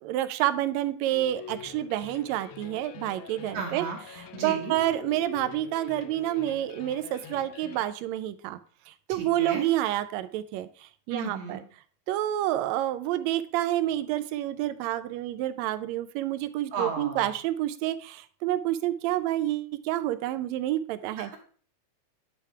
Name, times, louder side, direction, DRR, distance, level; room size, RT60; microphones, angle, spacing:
voice 1, 0.0-3.9 4.1-8.6 8.9-11.6 12.1-21.3, right 13 dB, 80° right, 13 dB, 1.7 m, -29 dB
sound 1, 1.1-7.9, left 9 dB, 85° left, 2.1 m, -45 dB
voice 2, 3.5-4.0 4.3-4.8 9.1-9.7 11.1-11.6 16.7-17.3 21.2-21.4, right 5 dB, 65° right, 1 dB, 2.1 m, -34 dB
10.0 x 3.3 x 4.7 m, 0.43 s
omnidirectional pair, 3.4 m